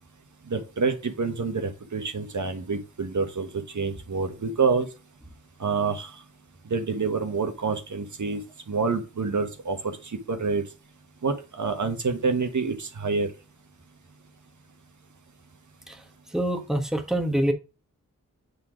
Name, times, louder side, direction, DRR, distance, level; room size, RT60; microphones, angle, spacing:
voice 1, 0.5-3.5 3.7-4.9 5.6-6.1 6.7-8.4 8.7-10.6 11.2-13.3, right 4 dB, 65° right, 1.1 m, -27 dB
voice 2, 16.3-17.5, right 1 dB, ahead, 1.3 m, -25 dB
8.3 x 3.8 x 4.7 m
wide cardioid pair, 55°, 32 cm